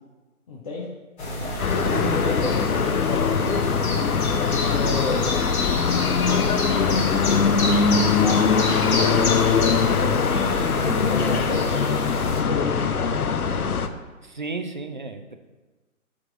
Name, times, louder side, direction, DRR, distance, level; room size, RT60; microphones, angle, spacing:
voice 1, 0.5-0.9 1.7-4.2 4.7-5.3 5.8-12.0 12.3-13.7, left 3 dB, 25° left, -4 dB, 0.7 m, -32 dB
sound 1, 1.2-12.4, left 2 dB, 50° left, 2.5 m, -29 dB
sound 2, 1.6-13.9, left 6 dB, 80° left, 0.7 m, -22 dB
voice 2, 1.7-2.2 14.2-15.4, right 2 dB, 35° right, 6 dB, 0.4 m, -32 dB
7.3 x 3.8 x 6.0 m, 1.2 s
figure-of-eight pair, 135°, 43 cm